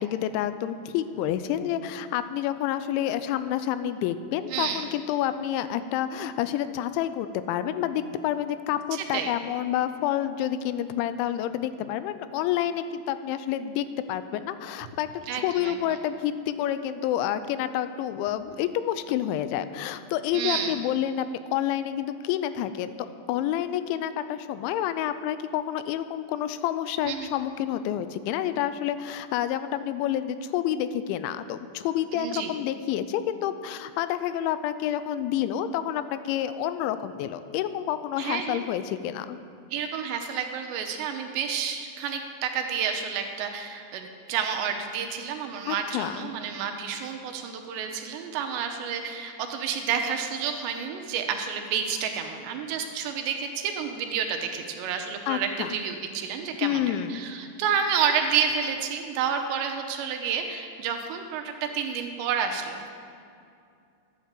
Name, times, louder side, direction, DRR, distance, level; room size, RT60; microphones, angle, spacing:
voice 1, 0.0-23.0 23.3-39.4 45.7-46.3 55.3-55.8 56.6-57.2, left 11 dB, 85° left, 12 dB, 2.9 m, -29 dB
voice 2, 4.5-4.9 8.9-9.3 15.3-16.0 20.3-20.7 27.0-27.3 32.1-32.5 38.2-38.7 39.7-56.8 57.1-62.9, right 7 dB, 80° right, 5 dB, 2.9 m, -30 dB
12.0 x 8.8 x 7.5 m, 2.4 s
omnidirectional pair, 5.3 m